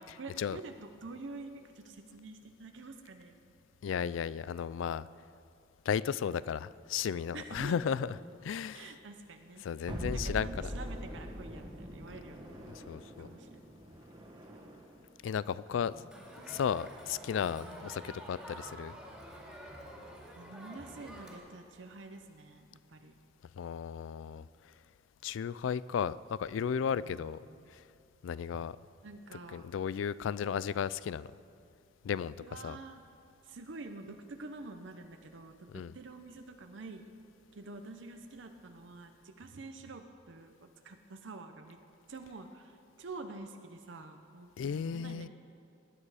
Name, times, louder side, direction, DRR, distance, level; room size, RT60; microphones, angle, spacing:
voice 1, 0.0-3.5 4.1-4.2 7.3-7.8 8.7-9.6 10.0-12.5 13.2-13.6 15.7-16.1 16.5-16.6 17.6-18.2 20.4-23.1 26.9-27.7 28.5-28.7 29.0-29.7 32.4-33.0 33.4-37.1 37.5-41.8 42.1-45.3, right 3 dB, 70° right, 6 dB, 0.7 m, -48 dB
voice 2, 3.8-5.0 5.9-8.1 8.4-8.9 9.6-10.5 12.7-13.3 15.2-16.0 16.5-18.9 23.6-24.5 25.2-27.4 28.2-28.8 29.5-31.3 32.0-32.3 32.6-32.8 35.7-35.9 44.6-45.3, left 7 dB, 80° left, 18 dB, 0.3 m, -34 dB
sound 1, 9.9-15.0, equal, 25° right, 1.4 m, -42 dB
Crowd, 16.1-21.4, equal, ahead, 2.4 m, -48 dB
19.0 x 9.9 x 4.9 m, 2.5 s
head